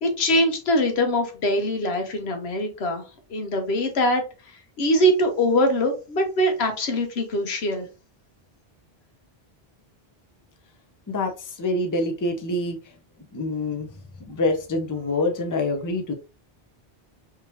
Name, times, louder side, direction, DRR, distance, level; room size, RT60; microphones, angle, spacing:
voice 1, 0.0-3.0 3.3-4.2 4.8-7.9, equal, 85° left, 5 dB, 1.2 m, -22 dB
voice 2, 11.1-12.9 13.3-13.9 14.3-16.1, left 2 dB, 20° left, 3 dB, 0.6 m, -26 dB
3.6 x 2.9 x 2.9 m, 0.31 s
omnidirectional pair, 1.0 m